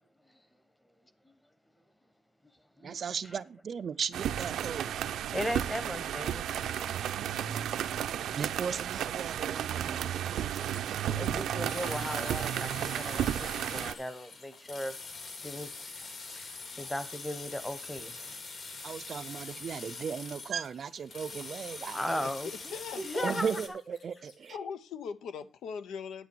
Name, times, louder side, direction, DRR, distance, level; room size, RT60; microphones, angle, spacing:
voice 1, 2.8-5.0 8.4-11.5 18.8-22.2 23.2-24.6, right 6 dB, 45° right, 0.5 m, -37 dB
sound 1, 4.1-13.9, right 10 dB, 85° right, 0.6 m, -33 dB
voice 2, 5.3-6.7 11.2-14.9 15.4-15.7 16.4-18.2 21.9-23.5, equal, 5° left, 1.1 m, -37 dB
sound 2, 7.7-19.0 20.6-24.5, left 3 dB, 65° left, 4.0 m, -59 dB
sound 3, 11.7-23.7, left 3 dB, 45° left, 2.3 m, -44 dB
voice 3, 22.2-23.6 24.5-26.3, left 6 dB, 85° left, 0.9 m, -40 dB
9.8 x 8.2 x 4.6 m
wide cardioid pair, 160°, 0 cm